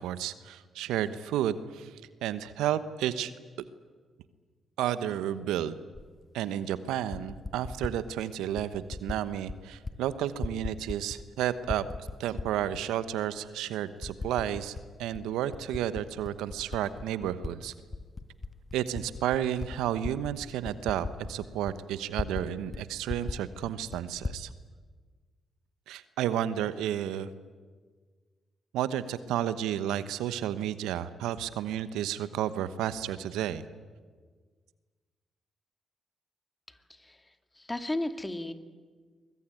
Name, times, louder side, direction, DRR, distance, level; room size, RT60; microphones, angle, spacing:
voice 1, 0.0-1.9 2.2-3.3 4.8-5.8 6.3-11.8 12.2-17.7 18.7-24.5 25.9-27.3 28.7-33.6, right 11 dB, 80° right, 14 dB, 1.0 m, -32 dB
Typing, 5.9-6.1 6.9-8.0 8.6-9.2 9.5-10.0 10.2-11.3 11.6-12.8 13.4-13.5 14.0-14.9 15.1-17.5 17.9-22.5 22.7-22.8 23.1-24.4, left 3 dB, 35° left, 1.5 m, -38 dB
voice 2, 36.7-37.2 37.6-38.5, left 1 dB, 20° left, 8 dB, 2.6 m, -34 dB
24.0 x 21.5 x 9.3 m, 1.5 s
hypercardioid pair, 40°, 0 cm